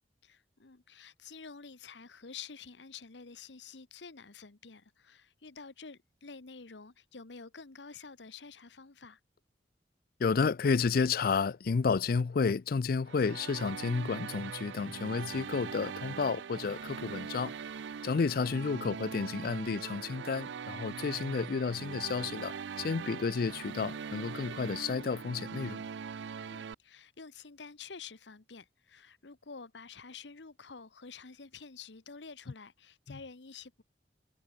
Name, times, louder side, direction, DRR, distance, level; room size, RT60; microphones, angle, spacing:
voice 1, 0.2-9.2 26.5-33.8, left 5 dB, 90° left, 1.2 m, -49 dB
voice 2, 10.2-17.5 18.0-25.8 33.1-33.2, left 5 dB, 55° left, 0.4 m, -31 dB
sound 1, 13.1-26.7, right 6 dB, 90° right, 0.5 m, -42 dB
head